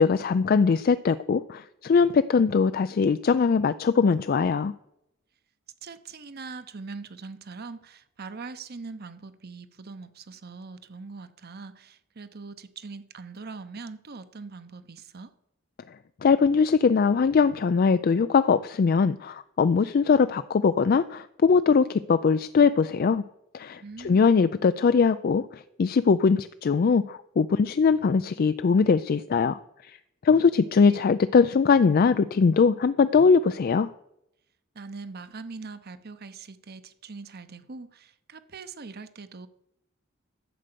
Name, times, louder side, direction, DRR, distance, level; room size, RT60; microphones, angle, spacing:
voice 1, 0.0-4.7 16.2-23.2 23.5-30.0 30.2-33.9, left 5 dB, 45° left, 0.4 m, -21 dB
voice 2, 5.8-15.3 23.8-24.4 34.7-39.5, right 4 dB, 50° right, 0.9 m, -42 dB
11.0 x 7.8 x 6.8 m
head